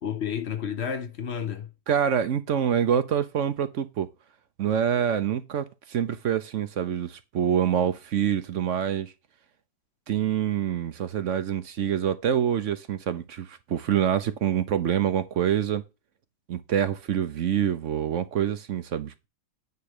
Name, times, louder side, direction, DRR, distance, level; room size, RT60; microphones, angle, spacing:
voice 1, 0.0-1.7, left 8 dB, 50° left, 0.9 m, -31 dB
voice 2, 1.9-4.1 4.6-9.1 10.1-15.8 16.5-19.3, right 9 dB, 55° right, 0.9 m, -26 dB
9.5 x 3.2 x 6.5 m
omnidirectional pair, 1.7 m